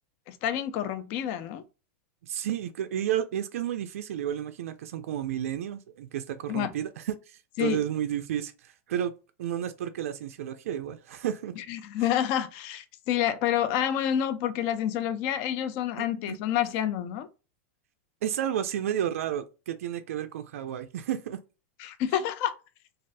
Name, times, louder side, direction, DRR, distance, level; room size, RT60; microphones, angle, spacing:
voice 1, 0.3-1.6 6.5-6.7 7.6-7.8 11.6-17.3 21.8-22.6, left 10 dB, 30° left, 0.3 m, -28 dB
voice 2, 2.2-9.1 9.4-11.5 16.3-16.4 18.2-21.4, right 10 dB, 80° right, 0.4 m, -31 dB
3.2 x 2.4 x 2.5 m
supercardioid pair, 175°, 8 cm